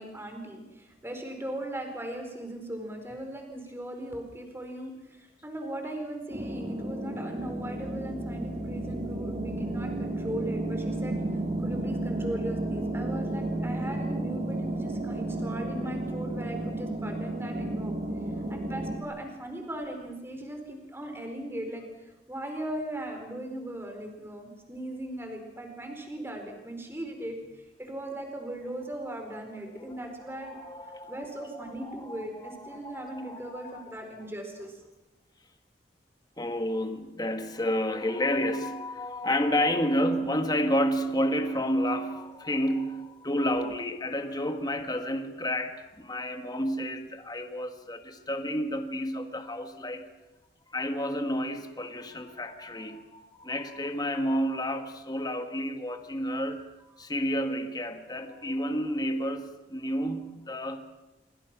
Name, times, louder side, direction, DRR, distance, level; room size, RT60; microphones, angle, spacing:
voice 1, 0.0-11.2 11.6-17.9 18.5-30.6 31.1-34.8 56.5-56.6, right 1 dB, 15° right, 4 dB, 4.4 m, -38 dB
sound 1, 6.3-19.0, right 1 dB, 35° right, 3.4 m, -32 dB
voice 2, 29.7-34.0 36.4-50.2 50.7-56.7 57.0-60.8, equal, 20° left, 6 dB, 1.5 m, -31 dB
27.5 x 24.0 x 6.1 m, 1.0 s
head